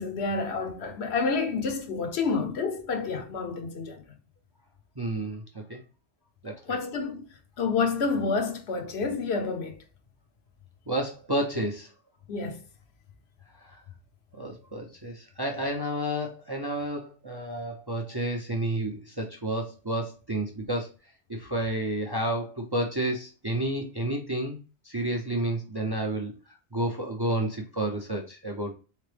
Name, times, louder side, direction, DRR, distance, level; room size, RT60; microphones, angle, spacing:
voice 1, 0.0-4.0 6.7-7.2 7.6-9.8 12.3-12.6, left 4 dB, 65° left, 1.0 m, -29 dB
voice 2, 5.0-5.8 6.4-6.8 10.9-11.9 13.6-13.8 14.3-20.9 21.3-24.6 24.8-26.3 26.7-28.7, right 1 dB, 30° right, 0.5 m, -30 dB
3.8 x 3.3 x 3.3 m
omnidirectional pair, 1.2 m